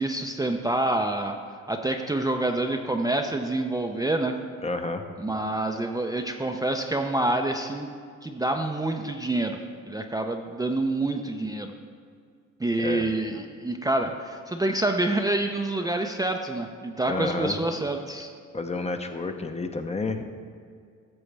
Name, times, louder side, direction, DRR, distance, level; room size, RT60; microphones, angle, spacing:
voice 1, 0.0-1.4 1.7-4.4 5.2-7.9 8.2-9.6 9.9-11.7 12.6-18.3, right 2 dB, 10° right, 3 dB, 0.5 m, -27 dB
voice 2, 4.6-5.0 12.8-13.2 17.1-17.6 18.5-20.3, left 3 dB, 20° left, 6 dB, 0.7 m, -30 dB
14.0 x 6.9 x 3.3 m, 2.2 s
cardioid pair, 90°, 30 cm